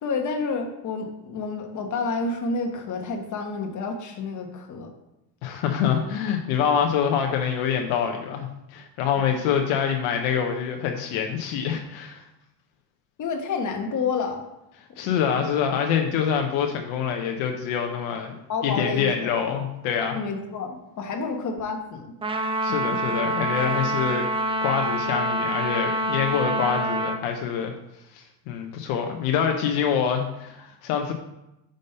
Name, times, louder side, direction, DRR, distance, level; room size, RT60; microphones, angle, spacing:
voice 1, 0.0-4.9 13.2-14.4 15.0-15.2 18.5-19.3 20.1-22.1 22.9-23.0, left 4 dB, 35° left, 3 dB, 1.2 m, -29 dB
voice 2, 5.4-12.2 15.0-20.2 22.6-24.3 24.6-27.7 28.1-31.1, left 7 dB, 70° left, 3 dB, 0.9 m, -25 dB
Trumpet, 22.2-27.2, right 1 dB, 10° right, 0.4 m, -26 dB
5.4 x 5.2 x 5.4 m, 0.90 s
supercardioid pair, 110°, 50 cm